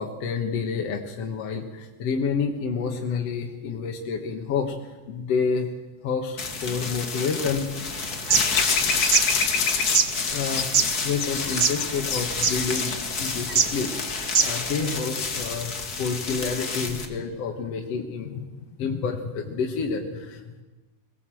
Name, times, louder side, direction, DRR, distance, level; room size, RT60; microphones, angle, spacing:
voice 1, 0.0-5.7 6.0-8.1 10.3-10.7 11.0-15.7 16.0-18.4 18.8-20.6, left 5 dB, 55° left, 2 dB, 2.2 m, -29 dB
sound 1, 6.4-17.1, left 4 dB, 35° left, 1.9 m, -29 dB
sound 2, 8.1-8.4 8.9-9.2 9.9-10.1 10.7-10.9 11.5-11.8 12.1-12.2 12.4-12.5 13.5-13.7 14.2-14.6, right 6 dB, 90° right, 0.8 m, -20 dB
sound 3, 8.4-13.0 13.3-13.4, left 6 dB, 80° left, 3.1 m, -28 dB
22.0 x 19.5 x 7.7 m, 1.2 s
omnidirectional pair, 3.8 m